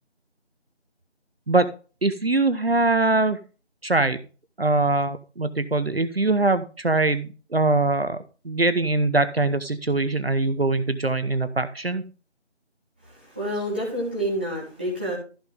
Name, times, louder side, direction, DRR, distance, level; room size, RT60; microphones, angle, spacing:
voice 1, 2.0-3.4 3.8-4.2 4.6-8.2 8.4-12.0, right 2 dB, 60° right, 11 dB, 0.9 m, -22 dB
voice 2, 13.0-15.2, equal, 10° right, -7 dB, 1.8 m, -28 dB
14.0 x 5.8 x 3.6 m, 0.35 s
figure-of-eight pair, 170°, 34 cm